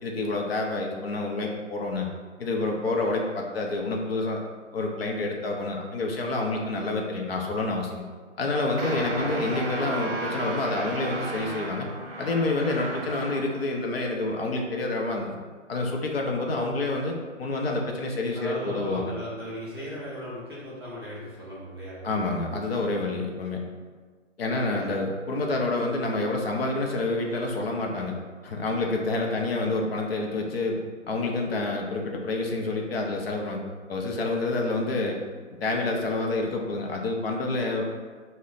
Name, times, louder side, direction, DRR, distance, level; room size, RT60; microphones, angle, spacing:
voice 1, 0.0-2.1 2.4-4.4 4.7-8.1 8.4-11.9 12.2-15.3 15.7-19.1 22.0-23.6 24.4-28.1 28.4-30.8 31.1-33.6 33.9-35.2 35.6-37.8, left 2 dB, 50° left, 0 dB, 0.6 m, -28 dB
sound 1, 8.8-13.6, right 2 dB, 50° right, 0.8 m, -34 dB
voice 2, 18.3-22.0 24.5-24.9, equal, 20° right, -10 dB, 0.4 m, -37 dB
3.0 x 2.1 x 3.8 m, 1.5 s
figure-of-eight pair, 140°, 38 cm